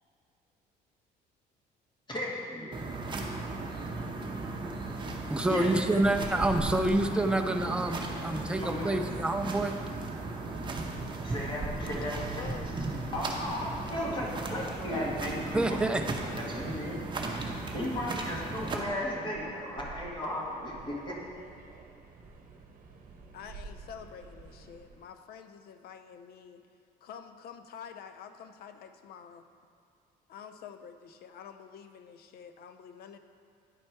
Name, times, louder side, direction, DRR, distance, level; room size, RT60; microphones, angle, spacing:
voice 1, 2.1-2.8 5.4-5.7 7.2-8.9 11.2-12.5 13.1-17.3 17.7-21.2, left 1 dB, 30° left, -3 dB, 1.5 m, -36 dB
sound 1, 2.7-18.7, right 2 dB, 30° right, 0.8 m, -36 dB
voice 2, 5.2-9.7 15.5-16.0, right 2 dB, 5° right, 5 dB, 0.5 m, -27 dB
Subway metro underground, 10.7-25.1, right 4 dB, 55° right, 0.9 m, -51 dB
voice 3, 12.0-12.7 23.3-26.6 27.0-29.4 30.3-33.2, left 7 dB, 65° left, 9 dB, 0.5 m, -47 dB
10.0 x 4.3 x 4.5 m, 2.4 s
cardioid pair, 110°, 17 cm